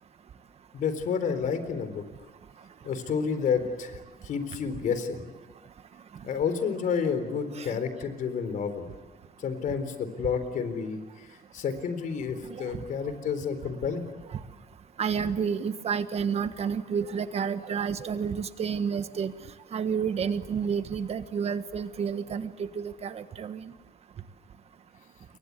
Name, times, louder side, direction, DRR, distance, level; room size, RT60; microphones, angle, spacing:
voice 1, 0.7-2.1 2.8-5.3 6.2-8.9 9.4-14.0, left 6 dB, 60° left, 10 dB, 4.0 m, -30 dB
voice 2, 15.0-19.3 19.7-23.6, right 6 dB, 40° right, 10 dB, 1.5 m, -30 dB
29.5 x 23.5 x 8.4 m, 1.2 s
cardioid pair, 140°, 16 cm